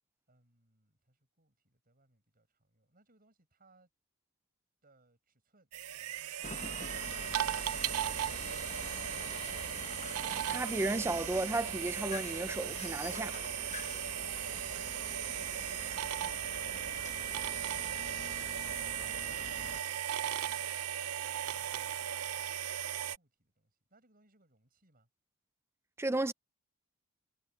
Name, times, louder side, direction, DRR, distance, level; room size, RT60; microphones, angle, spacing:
voice 1, 0.3-3.9 4.8-7.1 21.4-22.1 23.1-25.1, right 2 dB, 40° right, 7.2 m, -70 dB
sound 1, 5.7-23.2, right 11 dB, 90° right, 0.5 m, -37 dB
sound 2, 6.4-19.8, left 3 dB, 30° left, 1.0 m, -46 dB
voice 2, 10.5-13.4 26.0-26.3, right 2 dB, 10° right, 0.4 m, -33 dB
head